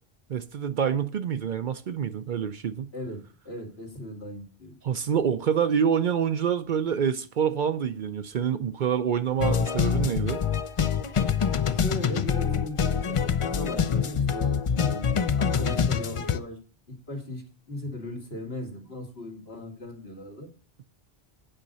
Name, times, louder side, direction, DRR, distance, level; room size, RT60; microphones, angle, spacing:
voice 1, 0.3-2.9 4.8-10.4, right 8 dB, 55° right, 0.6 m, -26 dB
voice 2, 3.4-4.8 11.6-16.6 16.9-20.5, left 1 dB, 75° left, 2.5 m, -38 dB
sound 1, 9.4-16.4, left 7 dB, 45° left, 0.4 m, -25 dB
9.0 x 5.1 x 6.7 m
omnidirectional pair, 1.1 m